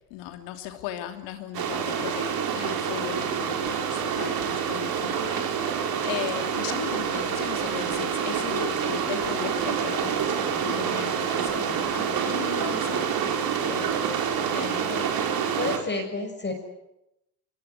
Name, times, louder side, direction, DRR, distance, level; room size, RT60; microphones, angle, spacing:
voice 1, 0.1-13.4 13.7-14.1 14.5-14.9, left 11 dB, 60° left, 6 dB, 3.0 m, -37 dB
sound 1, 1.5-15.8, right 7 dB, 50° right, 4.9 m, -27 dB
voice 2, 14.8-16.5, left 3 dB, 25° left, 3 dB, 6.6 m, -32 dB
24.0 x 23.0 x 9.9 m, 0.86 s
hypercardioid pair, 70°, 47 cm